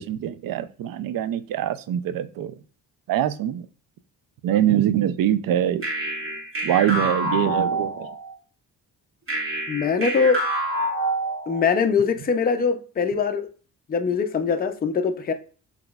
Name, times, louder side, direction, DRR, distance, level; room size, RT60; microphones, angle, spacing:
voice 1, 0.0-2.5 3.1-3.7 4.4-5.8 6.6-8.1, right 11 dB, 55° right, 0.4 m, -23 dB
sound 1, 5.8-8.3 9.3-11.8, right 1 dB, 30° right, 1.4 m, -27 dB
voice 2, 9.7-10.4 11.5-13.5 13.9-15.3, left 5 dB, 20° left, 0.4 m, -22 dB
3.7 x 2.9 x 2.3 m
supercardioid pair, 50°, 44 cm